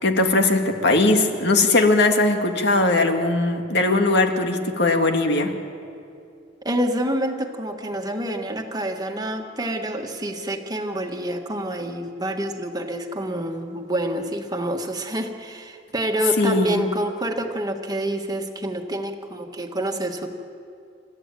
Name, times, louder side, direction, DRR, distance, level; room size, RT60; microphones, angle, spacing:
voice 1, 0.0-5.5 16.4-16.9, left 2 dB, 60° left, 4 dB, 2.0 m, -19 dB
voice 2, 6.6-20.3, right 1 dB, 20° right, 4 dB, 1.7 m, -27 dB
29.0 x 14.0 x 9.1 m, 2.5 s
head